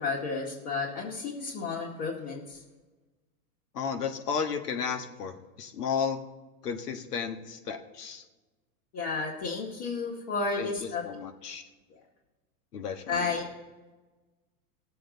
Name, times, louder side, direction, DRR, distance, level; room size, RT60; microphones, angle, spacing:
voice 1, 0.0-2.6 8.9-11.0 13.1-13.4, left 4 dB, 50° left, -4 dB, 2.1 m, -32 dB
voice 2, 3.7-6.2 6.6-8.2 10.6-11.6 12.7-13.4, left 6 dB, 85° left, 6 dB, 1.4 m, -33 dB
17.5 x 7.7 x 3.9 m, 1.2 s
hypercardioid pair, 110°, 45 cm